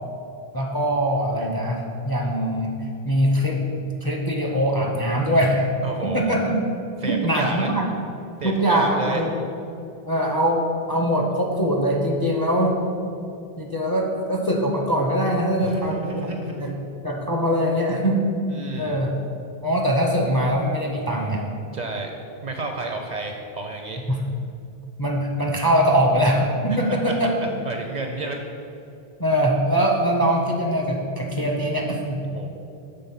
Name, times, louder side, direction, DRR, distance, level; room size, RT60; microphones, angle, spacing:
voice 1, 0.5-2.7 3.0-3.7 4.0-5.7 6.0-6.5 7.0-7.9 8.4-9.3 10.1-12.8 13.6-16.3 16.6-16.7 17.0-18.2 18.8-19.1 19.6-21.4 24.1-24.2 25.0-27.3 29.2-32.2, equal, 30° left, -1 dB, 0.5 m, -22 dB
voice 2, 5.8-6.4 7.0-7.7 8.4-9.2 15.6-16.8 18.5-19.0 21.7-22.2 22.4-24.0 26.7-27.3 27.6-28.4 32.3-32.5, right 3 dB, 55° right, 3 dB, 0.5 m, -31 dB
6.6 x 3.6 x 5.7 m, 2.7 s
omnidirectional pair, 1.0 m